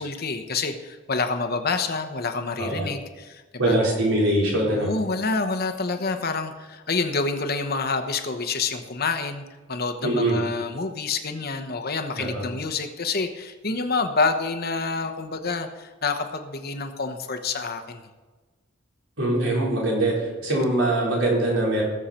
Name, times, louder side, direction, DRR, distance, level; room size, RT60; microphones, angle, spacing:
voice 1, 0.0-3.8 4.7-18.1, left 4 dB, 50° left, 6 dB, 1.0 m, -28 dB
voice 2, 3.6-4.9 10.0-10.4 12.2-12.4 19.2-21.8, right 1 dB, 80° right, -4 dB, 4.4 m, -23 dB
19.5 x 6.7 x 4.4 m, 1.2 s
head